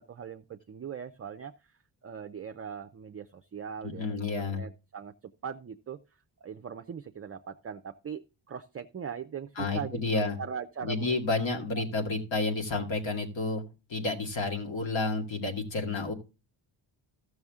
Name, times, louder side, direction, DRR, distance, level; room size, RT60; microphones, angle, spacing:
voice 1, 0.0-1.5 2.0-5.1 5.4-6.0 6.4-11.1 11.7-11.9, right 7 dB, 30° right, 6 dB, 0.5 m, -40 dB
voice 2, 3.8-4.6 9.6-10.4 10.8-13.6 13.9-16.1, left 3 dB, 75° left, 2 dB, 2.2 m, -30 dB
14.5 x 6.2 x 3.6 m, 0.31 s
wide cardioid pair, 155°, 46 cm